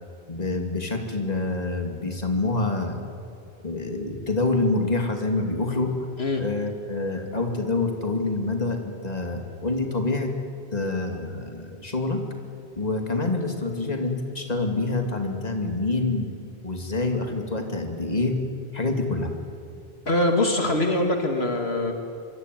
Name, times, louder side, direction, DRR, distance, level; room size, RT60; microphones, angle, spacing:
voice 1, 0.3-3.1 3.6-5.9 6.4-10.3 10.7-12.2 12.8-16.3 16.6-18.4 18.7-19.3, left 2 dB, 40° left, 4 dB, 2.9 m, -26 dB
voice 2, 20.1-21.9, left 1 dB, 75° left, 4 dB, 2.6 m, -23 dB
25.5 x 24.0 x 9.4 m, 2.6 s
omnidirectional pair, 1.1 m